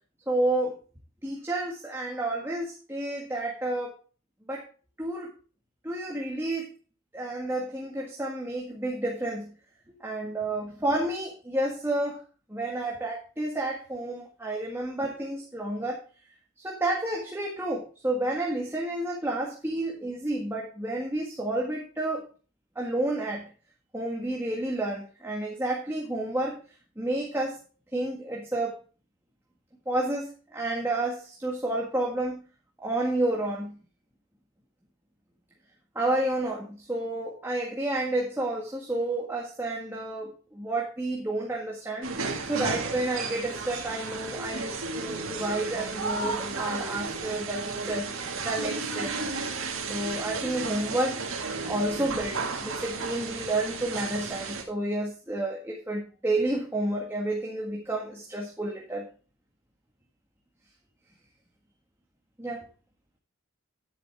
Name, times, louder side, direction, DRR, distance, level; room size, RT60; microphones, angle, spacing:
voice 1, 0.3-0.7 1.2-3.9 4.5-4.6 5.0-5.3 5.8-6.7 7.1-9.5 10.0-12.2 12.5-16.0 16.6-22.2 22.8-23.5 23.9-26.6 27.0-27.6 27.9-28.8 29.9-32.4 32.8-33.8 36.0-42.1 42.5-48.1 48.4-49.1 49.9-59.1 62.4-62.6, right 1 dB, 10° right, -2 dB, 1.7 m, -30 dB
sound 1, 42.0-54.6, right 4 dB, 70° right, 2.0 m, -33 dB
10.5 x 9.3 x 3.5 m, 0.37 s
head